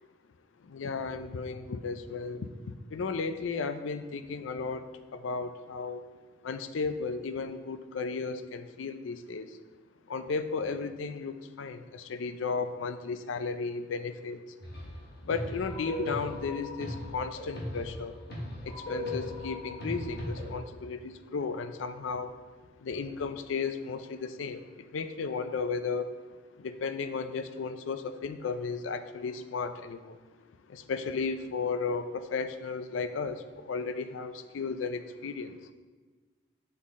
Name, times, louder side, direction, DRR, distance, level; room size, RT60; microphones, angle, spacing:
voice 1, 0.6-2.5 2.9-6.0 6.4-9.6 10.1-14.4 15.2-18.1 18.6-22.4 22.8-26.1 26.6-30.2 30.7-35.6, left 4 dB, 85° left, 10 dB, 0.4 m, -34 dB
sound 1, 14.6-15.0 15.3-20.5, left 1 dB, 55° left, 1.4 m, -37 dB
7.4 x 4.0 x 3.6 m, 1.4 s
head